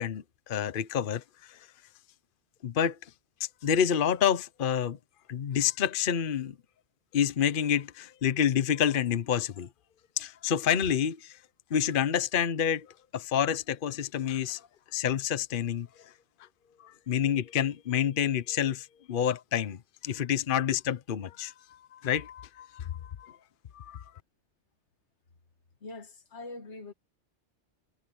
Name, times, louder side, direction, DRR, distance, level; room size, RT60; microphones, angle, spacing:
voice 1, 0.0-1.6 2.6-3.0 3.6-5.0 5.3-6.5 7.1-9.7 10.2-11.4 11.7-12.9 13.1-14.6 14.9-15.9 16.8-21.5 21.9-23.4 23.7-24.0, left 9 dB, 55° left, 0.9 m, -28 dB
voice 2, 25.8-26.9, left 2 dB, 85° left, 1.8 m, -43 dB
omnidirectional pair, 1.2 m